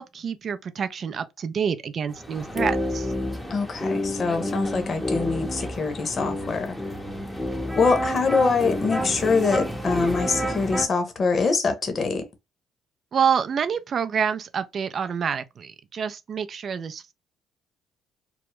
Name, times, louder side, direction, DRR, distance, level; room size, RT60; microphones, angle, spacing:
voice 1, 0.0-3.1 13.1-17.1, right 7 dB, 50° right, 0.4 m, -27 dB
sound 1, 2.1-10.9, left 1 dB, 5° left, 0.7 m, -29 dB
voice 2, 3.5-6.8 7.8-12.3, left 4 dB, 45° left, 0.7 m, -24 dB
2.2 x 2.0 x 3.0 m
supercardioid pair, 70°, 0 cm